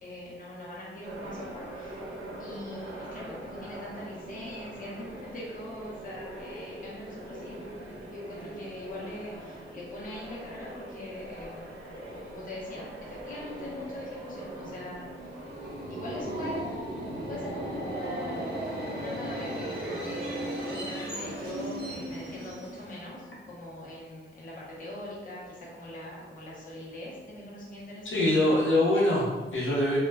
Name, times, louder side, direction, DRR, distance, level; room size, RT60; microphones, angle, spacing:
voice 1, 0.0-2.1 2.4-11.8 12.3-15.4 15.9-16.6 17.0-18.7 18.9-28.6, left 1 dB, 40° left, -6 dB, 0.6 m, -42 dB
sound 1, 1.0-17.9, right 1 dB, 85° right, 0.7 m, -43 dB
Subway metro underground, 15.3-23.1, right 1 dB, 50° right, 0.7 m, -36 dB
voice 2, 28.0-30.0, left 1 dB, 80° left, -5 dB, 0.7 m, -24 dB
2.2 x 2.1 x 3.3 m, 1.3 s
wide cardioid pair, 145°, 21 cm